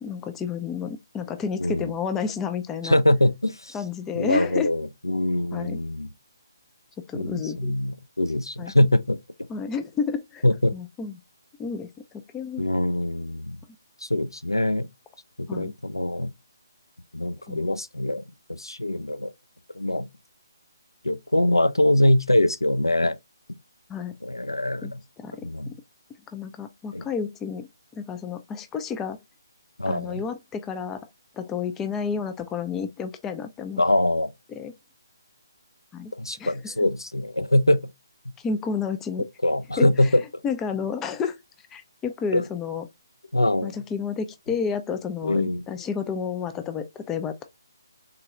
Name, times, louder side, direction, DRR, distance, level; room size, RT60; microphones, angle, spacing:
voice 1, 0.0-3.0 3.7-4.7 5.5-5.8 7.0-7.7 8.6-8.7 9.5-10.4 10.7-11.2 11.6-11.9 12.3-12.7 15.5-15.7 17.5-17.6 23.9-24.1 24.8-24.9 25.2-25.8 26.3-27.7 27.9-29.2 29.9-31.0 31.4-33.8 34.6-34.7 35.9-36.1 36.4-36.6 38.4-39.2 39.8-40.1 40.4-41.4 41.7-42.8 43.6-47.4, left 6 dB, 10° left, 0.3 m, -30 dB
voice 2, 1.6-1.9 2.8-3.8 4.1-6.1 7.1-9.2 10.4-10.7 12.6-13.6 14.0-14.9 15.4-16.3 17.1-18.2 18.5-19.3 19.7-20.1 21.0-23.2 24.2-25.0 25.4-25.8 26.9-27.0 29.8-30.2 33.8-34.3 36.1-37.9 39.4-40.2 42.3-42.5 43.3-43.7 45.2-45.6, left 1 dB, 85° left, 0.4 m, -23 dB
3.7 x 2.2 x 3.0 m
figure-of-eight pair, 140°, 2 cm